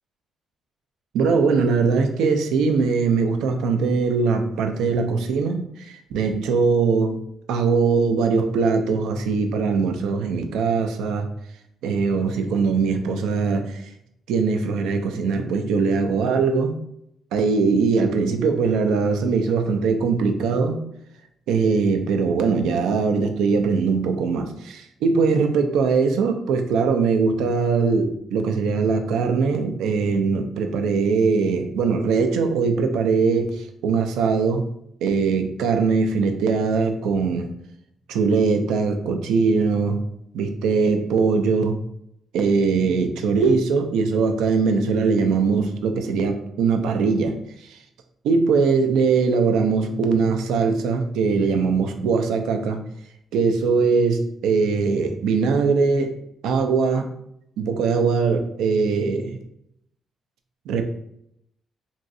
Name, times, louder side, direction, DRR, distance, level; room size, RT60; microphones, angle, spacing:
voice 1, 1.1-7.2 7.5-11.3 11.8-13.8 14.3-16.8 17.3-20.8 21.5-34.7 35.0-37.5 38.1-40.1 40.3-41.8 42.3-47.4 47.7-47.8 48.2-52.8 53.3-56.2 56.4-57.1 57.6-59.4 60.7-60.8, right 4 dB, 90° right, 5 dB, 0.4 m, -21 dB
3.0 x 2.7 x 2.6 m, 0.76 s
cardioid pair, 90°, 0 cm